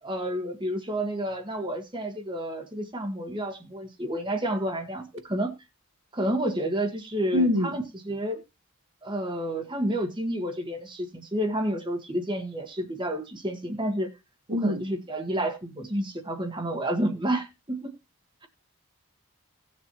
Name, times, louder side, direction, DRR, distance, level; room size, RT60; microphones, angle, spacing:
voice 1, 0.0-5.5 6.1-8.4 9.0-14.1 14.5-17.9, right 1 dB, 20° right, 1.5 m, -30 dB
voice 2, 7.3-7.7 14.5-14.8, left 1 dB, 60° right, 1.7 m, -24 dB
17.5 x 7.4 x 3.0 m
head